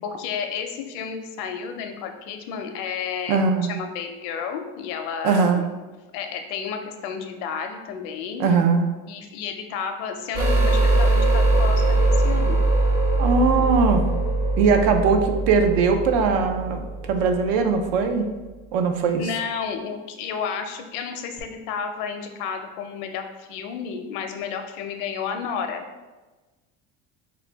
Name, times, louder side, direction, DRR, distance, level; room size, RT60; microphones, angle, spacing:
voice 1, 0.0-3.4 3.7-5.6 6.1-8.5 9.1-12.6 19.2-25.8, left 6 dB, 70° left, 6 dB, 0.6 m, -31 dB
voice 2, 3.3-3.7 5.2-5.6 8.4-8.9 13.2-14.0 14.6-16.8 17.1-18.3 18.7-19.2, right 5 dB, 80° right, 6 dB, 0.6 m, -20 dB
sound 1, 10.3-18.1 21.4-21.5, right 2 dB, 40° right, 0.9 m, -21 dB
3.7 x 2.2 x 4.4 m, 1.2 s
cardioid pair, 160°, 31 cm